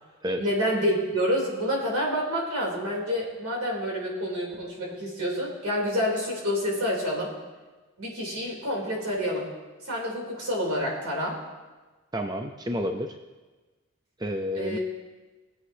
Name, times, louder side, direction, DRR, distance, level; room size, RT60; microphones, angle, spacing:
voice 1, 0.4-7.3 8.0-9.5 9.9-11.3 14.5-14.8, equal, 80° right, -2 dB, 3.1 m, -28 dB
voice 2, 12.1-13.2 14.2-14.8, equal, 20° right, 5 dB, 0.4 m, -30 dB
19.5 x 7.9 x 2.7 m, 1.2 s
head